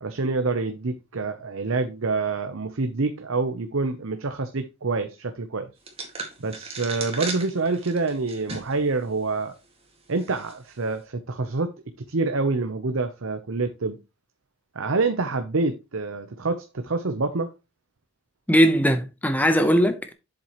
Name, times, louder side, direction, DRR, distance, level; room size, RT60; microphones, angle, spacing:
voice 1, 0.0-5.7 6.4-9.5 10.1-11.7 12.1-14.0 14.7-17.5, right 3 dB, 75° right, 0.8 m, -27 dB
sound 1, 5.9-8.8 9.3-9.4 10.2-10.5, right 3 dB, 25° right, 2.0 m, -36 dB
voice 2, 18.5-20.1, equal, 5° left, 0.9 m, -19 dB
7.6 x 7.4 x 3.0 m
head